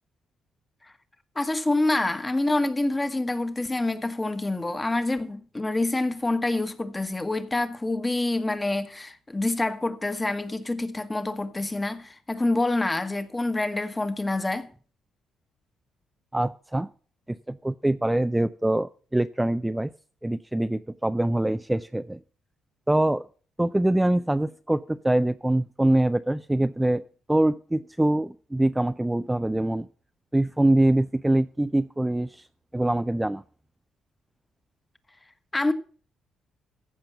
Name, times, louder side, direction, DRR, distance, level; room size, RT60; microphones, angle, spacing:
voice 1, 1.3-14.7 35.5-35.7, left 2 dB, 15° left, 1.2 m, -27 dB
voice 2, 16.3-16.9 17.3-19.9 20.2-22.2 22.9-23.2 23.6-27.0 27.3-29.9 30.3-32.4 32.7-33.4, right 1 dB, 10° right, 0.4 m, -24 dB
15.0 x 5.2 x 7.1 m
cardioid pair, 90°, 0 cm